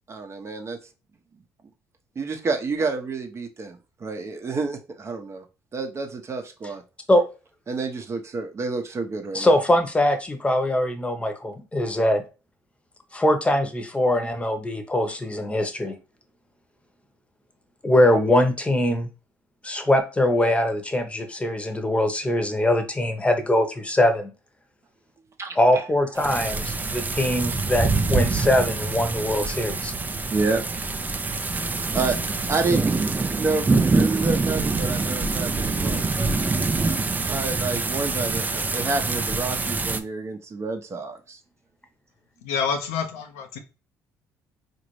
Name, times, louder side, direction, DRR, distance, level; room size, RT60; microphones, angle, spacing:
voice 1, 0.1-0.8 2.2-5.4 5.7-6.8 7.7-9.6 25.4-25.8 30.3-30.6 31.9-32.2 32.5-33.0 33.3-36.3 37.3-41.4, right 3 dB, 40° right, 0.8 m, -29 dB
voice 2, 9.3-12.2 13.1-16.0 17.8-19.1 19.6-24.3 25.6-29.9, left 1 dB, 15° left, 0.9 m, -22 dB
sound 1, 26.2-40.0, right 3 dB, 25° right, 0.5 m, -25 dB
voice 3, 42.4-43.6, left 6 dB, 85° left, 0.6 m, -27 dB
4.0 x 2.6 x 3.1 m
hypercardioid pair, 60°, 7 cm